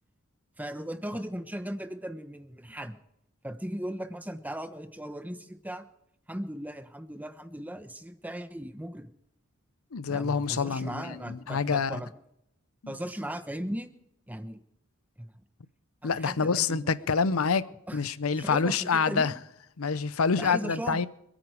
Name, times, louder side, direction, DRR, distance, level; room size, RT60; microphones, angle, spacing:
voice 1, 0.6-2.9 3.4-5.8 6.3-9.1 10.1-12.1 12.9-13.9 14.3-14.6 15.2-15.3 16.0-17.1 17.9-18.1 18.3-19.4 20.4-21.0, equal, 10° right, 1.1 m, -37 dB
voice 2, 9.9-12.0 12.8-12.9 16.0-17.7 17.9-19.3 19.8-21.1, left 5 dB, 75° left, 0.7 m, -27 dB
26.5 x 9.1 x 4.9 m
head